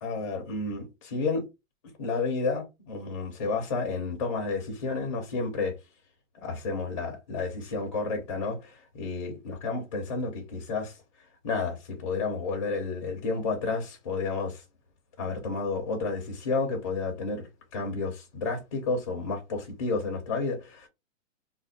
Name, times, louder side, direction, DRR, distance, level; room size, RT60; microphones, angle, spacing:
voice 1, 0.0-1.4 2.0-5.7 6.4-11.0 11.4-14.6 15.2-20.9, left 4 dB, 25° left, 0.5 m, -31 dB
2.5 x 2.1 x 3.9 m
hypercardioid pair, 170°, 39 cm